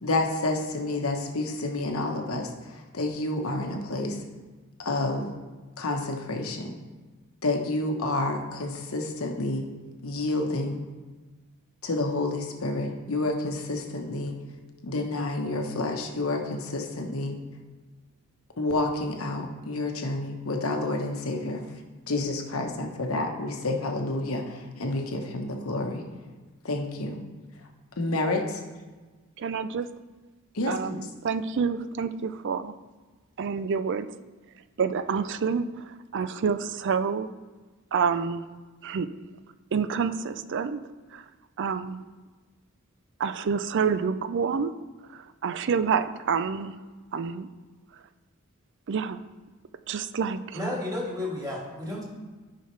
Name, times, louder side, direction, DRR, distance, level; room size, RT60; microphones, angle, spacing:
voice 1, 0.0-4.2 4.8-5.3 5.8-6.8 7.4-9.7 10.0-10.8 11.8-14.4 14.8-17.4 18.6-21.6 22.1-26.0 26.6-27.2 28.0-28.6 30.5-31.0, left 2 dB, 80° left, 3 dB, 1.1 m, -29 dB
voice 2, 29.4-29.9 30.7-32.7 33.4-34.1 34.8-37.3 37.9-38.4 38.8-39.1 39.7-40.8 41.1-41.2 41.6-42.0 43.2-44.7 45.4-46.8 47.1-47.5 48.9-49.2 49.9-50.4, right 6 dB, 60° right, 12 dB, 0.4 m, -28 dB
voice 3, 50.5-52.0, left 1 dB, 20° right, -4 dB, 2.1 m, -32 dB
13.0 x 5.7 x 3.3 m, 1.3 s
head